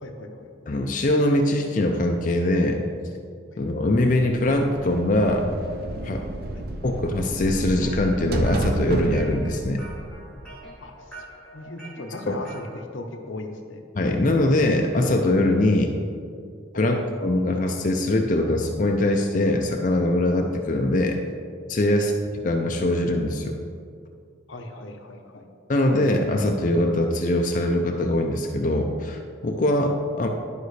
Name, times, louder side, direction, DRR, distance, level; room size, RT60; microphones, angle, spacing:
voice 1, 0.0-0.7 6.5-6.6 10.8-11.3 11.5-12.7 12.9-13.8 16.7-17.0 21.9-22.0 24.5-25.5, left 2 dB, 85° left, 4 dB, 0.8 m, -38 dB
voice 2, 0.7-2.8 3.6-5.5 6.0-6.2 6.8-9.9 12.3-12.4 13.9-15.9 16.7-21.2 21.7-22.1 22.4-23.6 25.7-30.3, left 1 dB, 40° left, 2 dB, 0.5 m, -22 dB
sound 1, 4.2-11.0, right 1 dB, 50° right, 0.6 m, -31 dB
sound 2, 7.5-12.8, right 2 dB, 5° left, 1.1 m, -45 dB
11.5 x 5.3 x 3.2 m, 2.3 s
head